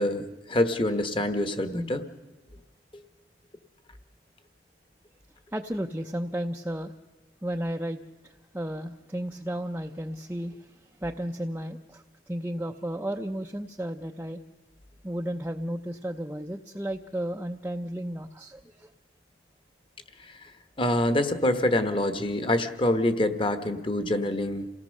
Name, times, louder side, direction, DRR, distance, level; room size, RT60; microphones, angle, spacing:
voice 1, 0.0-2.1 20.8-24.7, left 1 dB, 30° left, 9 dB, 1.3 m, -26 dB
voice 2, 5.5-6.9 7.4-10.7 11.0-14.4 15.0-18.9, right 1 dB, 10° right, 2 dB, 0.6 m, -33 dB
28.0 x 17.5 x 6.5 m, 1.2 s
head